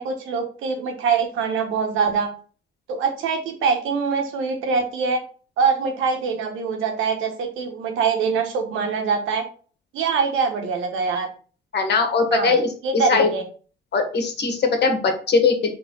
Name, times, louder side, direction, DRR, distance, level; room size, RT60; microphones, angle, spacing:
voice 1, 0.0-2.3 2.9-5.2 5.6-9.4 9.9-11.3 12.3-12.6 12.8-13.4, right 5 dB, 85° right, 4 dB, 1.4 m, -23 dB
voice 2, 11.7-12.7 13.1-13.3 13.9-15.7, left 4 dB, 60° left, 4 dB, 1.8 m, -20 dB
4.5 x 3.8 x 5.5 m, 0.40 s
cardioid pair, 90°, 20 cm